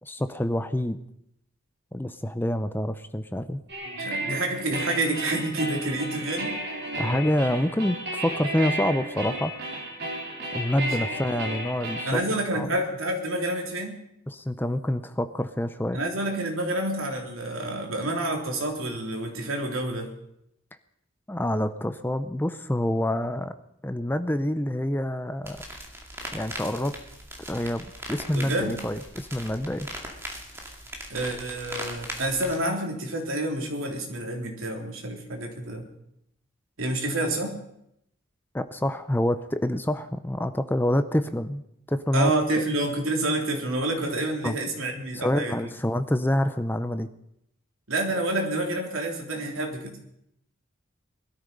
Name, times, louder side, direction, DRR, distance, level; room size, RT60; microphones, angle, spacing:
voice 1, 0.0-1.0 1.9-3.6 7.0-9.6 10.5-12.2 12.5-12.7 14.3-16.0 21.3-23.6 23.8-25.6 26.3-26.9 27.5-29.9 38.5-41.6 41.9-42.3 44.4-44.6 45.1-47.1, left 1 dB, 10° left, 11 dB, 0.6 m, -27 dB
sound 1, 3.7-12.1, right 1 dB, 50° right, 4.1 m, -33 dB
voice 2, 3.9-6.5 10.8-11.2 12.0-14.0 15.9-20.1 28.3-28.7 31.1-35.8 36.8-37.6 42.1-45.6 47.9-50.0, right 1 dB, 85° right, 2 dB, 3.3 m, -28 dB
sound 2, 25.4-32.6, right 1 dB, 10° right, 2.4 m, -39 dB
20.0 x 13.0 x 5.4 m, 0.77 s
head